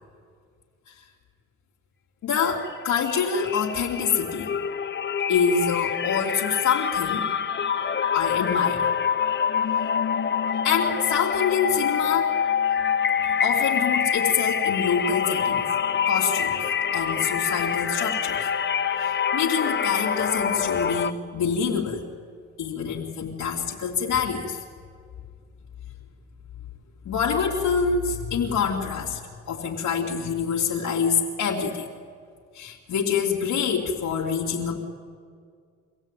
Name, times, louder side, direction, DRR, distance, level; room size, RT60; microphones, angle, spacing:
voice 1, 2.2-4.5 5.3-7.3 8.1-8.9 10.6-12.4 13.4-15.7 16.1-16.6 16.9-18.5 19.0-22.1 22.6-24.6 27.0-29.2 29.5-31.9 32.5-34.8, left 6 dB, 80° left, -4 dB, 2.9 m, -26 dB
sound 1, 2.5-2.7 3.0-21.1, left 7 dB, 40° left, 1.1 m, -26 dB
25.5 x 16.5 x 9.2 m, 2.2 s
cardioid pair, 90°, 30 cm